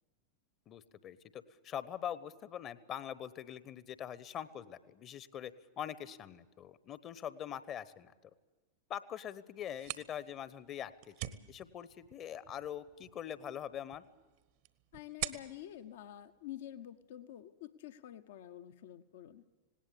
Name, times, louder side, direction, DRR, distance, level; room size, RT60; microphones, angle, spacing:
voice 1, 0.7-8.1 8.9-14.0, left 10 dB, 30° left, 17 dB, 1.0 m, -43 dB
sound 1, 9.6-17.1, right 15 dB, 50° right, 1.1 m, -47 dB
voice 2, 14.9-19.4, left 12 dB, 55° left, 11 dB, 0.9 m, -48 dB
19.0 x 18.0 x 8.5 m, 1.2 s
figure-of-eight pair, 90°, 0 cm